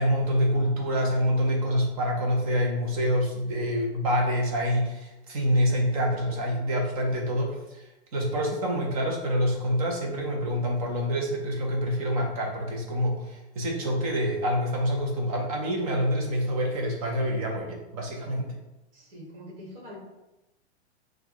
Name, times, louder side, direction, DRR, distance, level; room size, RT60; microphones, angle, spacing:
voice 1, 0.0-7.8 8.1-18.5, equal, 35° right, 0 dB, 0.8 m, -26 dB
voice 2, 18.9-20.0, left 1 dB, 55° right, -2 dB, 1.5 m, -44 dB
4.5 x 2.4 x 3.6 m, 0.96 s
supercardioid pair, 175°, 34 cm